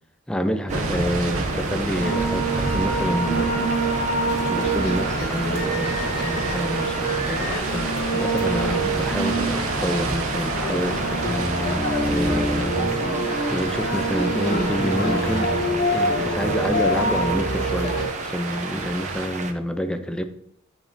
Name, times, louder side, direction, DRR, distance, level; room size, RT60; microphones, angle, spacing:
voice 1, 0.3-3.7 4.4-11.2 11.7-12.8 13.2-15.5 15.9-20.2, equal, 5° left, 0.5 m, -28 dB
sound 1, 0.7-19.5, right 3 dB, 35° right, 0.7 m, -31 dB
sound 2, 0.7-19.3, right 4 dB, 75° right, 1.0 m, -32 dB
sound 3, 2.0-18.0, right 1 dB, 45° left, 2.0 m, -25 dB
10.5 x 7.2 x 2.6 m
head